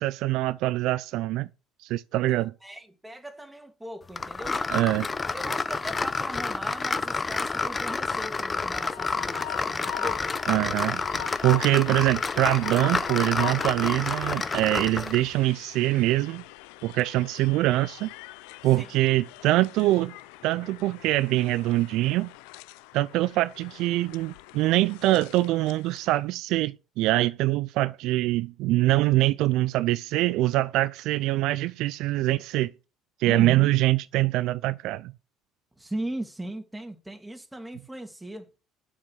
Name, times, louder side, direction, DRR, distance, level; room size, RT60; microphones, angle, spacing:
voice 1, 0.0-1.5 1.8-2.5 4.7-5.1 10.5-16.4 16.8-18.1 18.6-20.2 20.4-22.3 22.9-32.7 33.2-35.1, right 17 dB, 70° right, 0.4 m, -24 dB
voice 2, 2.3-4.9 5.3-10.4 18.7-18.9 33.3-33.7 35.8-38.5, right 1 dB, 10° right, 2.8 m, -38 dB
sound 1, 4.2-15.3, left 4 dB, 25° left, 0.8 m, -29 dB
Train, 8.4-26.2, left 19 dB, 80° left, 0.5 m, -43 dB
8.7 x 7.3 x 6.8 m
hypercardioid pair, 70°, 0 cm